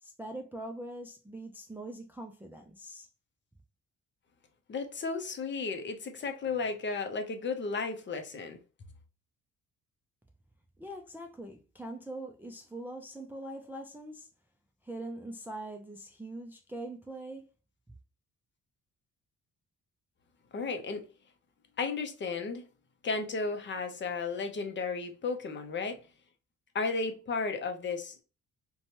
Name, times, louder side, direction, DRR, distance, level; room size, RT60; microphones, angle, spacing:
voice 1, 0.0-3.1 10.8-14.3 14.8-17.5, right 1 dB, 5° right, 0.4 m, -42 dB
voice 2, 4.7-8.6 20.5-21.0 21.8-22.6 23.0-26.0 26.7-28.2, left 4 dB, 40° left, 0.6 m, -34 dB
2.8 x 2.2 x 2.8 m
cardioid pair, 90°, 30 cm